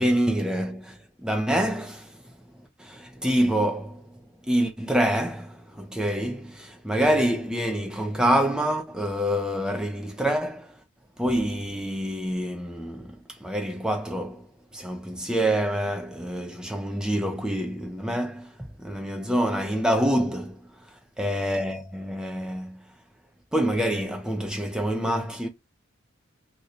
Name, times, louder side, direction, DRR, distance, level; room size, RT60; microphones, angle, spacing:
voice 1, 0.0-2.1 2.8-4.0 4.5-10.7 11.2-13.1 13.4-14.5 14.7-18.5 18.8-20.6 21.2-22.8 23.5-25.5, right 1 dB, 5° right, 0.5 m, -26 dB
2.9 x 2.2 x 3.8 m
head